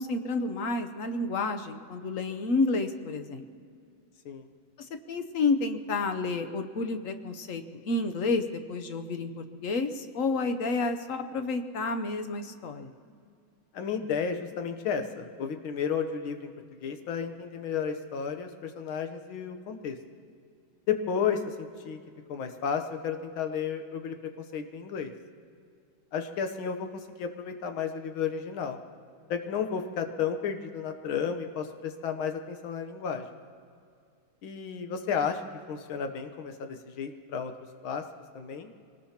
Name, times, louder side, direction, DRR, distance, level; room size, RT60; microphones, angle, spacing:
voice 1, 0.0-3.4 5.1-12.9, left 3 dB, 60° left, 8 dB, 0.8 m, -30 dB
voice 2, 13.7-16.5 16.8-20.0 20.9-22.0 22.3-24.2 24.5-25.1 26.1-26.9 27.2-28.8 29.3-33.2 34.4-35.4 35.7-37.5 37.8-38.0 38.4-38.7, left 7 dB, 85° left, 6 dB, 1.8 m, -32 dB
24.5 x 19.0 x 2.9 m, 2.3 s
omnidirectional pair, 2.2 m